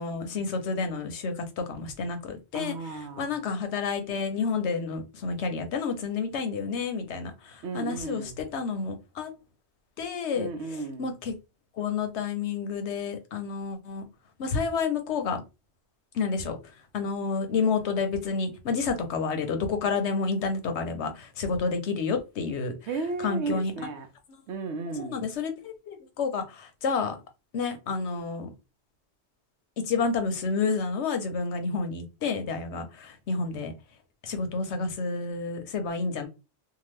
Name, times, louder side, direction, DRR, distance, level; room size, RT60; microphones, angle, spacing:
voice 1, 0.0-2.8 3.2-9.3 10.0-10.5 11.0-11.3 11.8-14.0 14.4-15.4 16.1-16.6 16.9-22.7 23.2-23.7 24.9-27.2 27.5-28.5 29.8-33.7 34.2-36.3, left 4 dB, 85° left, 1.0 m, -30 dB
voice 2, 2.5-3.4 7.6-8.4 10.3-11.1 22.9-24.1 24.5-25.2, right 3 dB, 85° right, 0.9 m, -34 dB
2.8 x 2.2 x 3.1 m
omnidirectional pair, 1.1 m